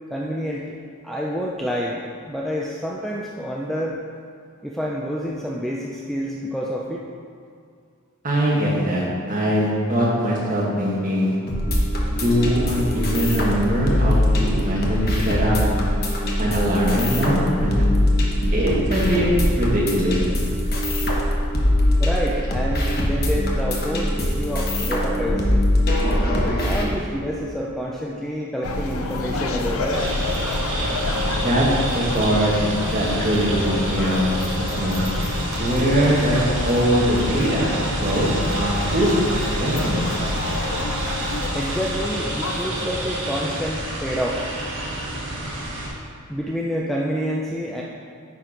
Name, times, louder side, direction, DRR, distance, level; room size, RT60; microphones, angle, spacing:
voice 1, 0.1-0.8 1.0-4.0 4.6-7.0 22.0-25.7 26.6-30.1 41.5-44.4 46.3-47.8, equal, ahead, -4 dB, 0.4 m, -28 dB
voice 2, 8.2-11.4 12.1-15.6 16.4-17.9 18.5-19.3 19.6-20.2 31.3-32.5 32.9-34.2 34.8-35.0 35.6-37.7 38.0-39.1 39.6-40.1, equal, 40° right, -5 dB, 1.8 m, -22 dB
sound 1, 11.5-26.8, left 1 dB, 45° left, 1.2 m, -22 dB
sound 2, 28.6-42.6, left 2 dB, 75° left, 0.7 m, -28 dB
sound 3, 29.9-45.9, right 1 dB, 55° right, 1.7 m, -28 dB
9.6 x 4.6 x 5.0 m, 2.2 s
head